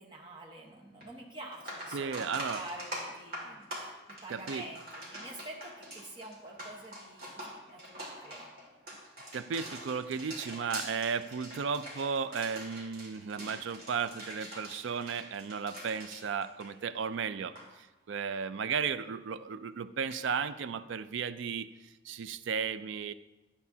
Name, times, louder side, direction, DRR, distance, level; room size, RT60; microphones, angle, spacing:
voice 1, 0.0-8.5, right 2 dB, 25° right, -1 dB, 1.1 m, -47 dB
sound 1, 1.0-1.1 1.5-17.1 17.4-17.7 20.1-20.2, right 1 dB, 50° right, 2.3 m, -44 dB
voice 2, 1.9-2.6 4.3-4.6 9.3-23.1, right 6 dB, 80° right, 13 dB, 0.4 m, -35 dB
10.5 x 8.2 x 2.8 m, 1.1 s
head